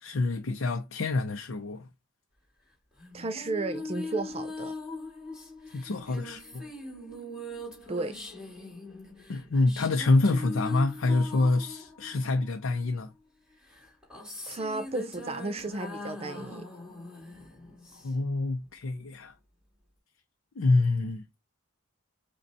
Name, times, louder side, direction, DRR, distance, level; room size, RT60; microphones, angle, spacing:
voice 1, 0.0-1.9 5.7-6.6 9.3-13.1 18.0-19.3 20.6-21.2, left 2 dB, 65° left, 0.5 m, -26 dB
sound 1, 3.0-12.9 13.7-18.4, left 2 dB, 5° right, 2.3 m, -41 dB
voice 2, 3.1-4.7 7.9-8.2 14.5-16.7, right 3 dB, 30° right, 0.4 m, -33 dB
5.2 x 2.2 x 4.0 m
head